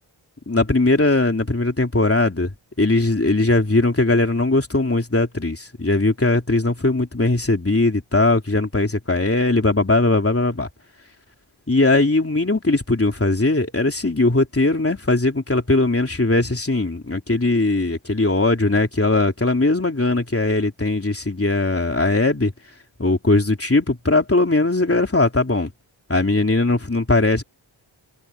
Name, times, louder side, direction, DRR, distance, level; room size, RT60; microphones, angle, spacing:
voice 1, 0.5-2.5 2.8-10.7 11.7-22.5 23.0-25.7 26.1-27.4, left 2 dB, 25° left, 3.5 m, -19 dB
cardioid pair, 40°, 49 cm